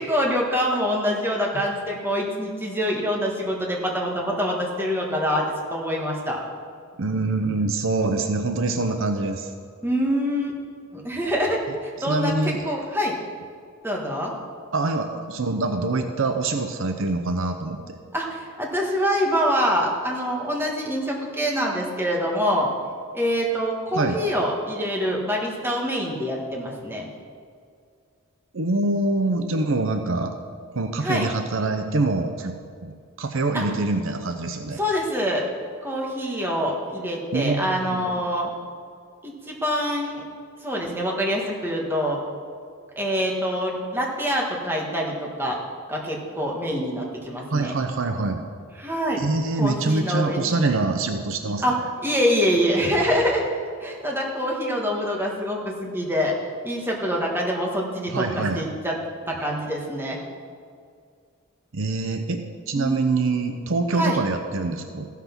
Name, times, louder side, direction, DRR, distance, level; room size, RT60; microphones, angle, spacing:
voice 1, 0.0-6.4 9.8-10.6 10.9-13.1 13.8-14.3 18.1-22.7 23.1-27.0 31.0-31.3 33.5-33.6 34.8-35.4 35.8-38.5 39.2-40.3 40.6-42.2 42.9-45.6 45.9-47.7 48.8-49.2 49.6-50.5 51.6-51.7 52.0-53.4 53.8-56.3 56.6-59.0 59.3-60.2 62.7-63.0 63.9-64.2, equal, 10° right, -2 dB, 1.6 m, -25 dB
voice 2, 7.0-9.5 12.0-12.8 14.7-18.0 23.9-24.2 28.5-30.3 30.7-32.5 32.8-34.8 37.3-38.2 47.5-48.5 49.2-51.6 58.1-58.6 61.7-65.1, right 3 dB, 70° right, 6 dB, 0.7 m, -25 dB
15.0 x 5.9 x 5.9 m, 2.2 s
head